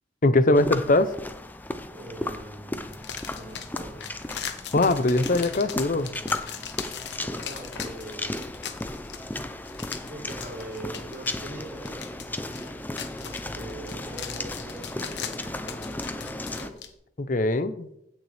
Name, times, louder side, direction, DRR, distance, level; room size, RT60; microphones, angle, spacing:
voice 1, 0.2-1.1 4.7-6.1 17.2-17.9, left 2 dB, 50° left, 13 dB, 0.7 m, -21 dB
sound 1, 0.5-16.7, left 1 dB, 10° left, 0.5 m, -35 dB
voice 2, 1.9-3.1 3.3-4.0 7.2-8.7 10.1-16.8, right 1 dB, 65° right, -5 dB, 4.0 m, -43 dB
sound 2, 2.9-16.9, left 8 dB, 85° left, 0.9 m, -40 dB
16.0 x 6.6 x 3.4 m, 0.77 s
head